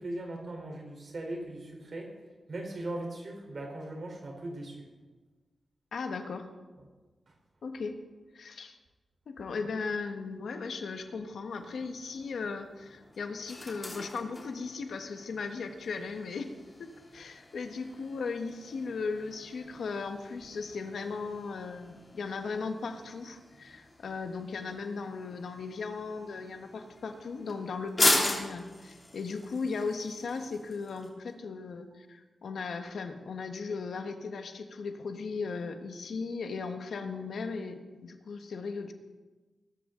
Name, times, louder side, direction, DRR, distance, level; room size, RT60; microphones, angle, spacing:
voice 1, 0.0-2.1 2.5-4.9, right 1 dB, 50° right, 1 dB, 4.0 m, -39 dB
voice 2, 5.9-6.5 7.6-8.0 8.3-8.8 9.3-16.5 16.8-38.9, left 4 dB, 80° left, 6 dB, 1.4 m, -37 dB
sound 1, 11.5-31.1, left 2 dB, 25° left, 3.0 m, -38 dB
20.0 x 13.0 x 3.9 m, 1.2 s
wide cardioid pair, 130°, 0 cm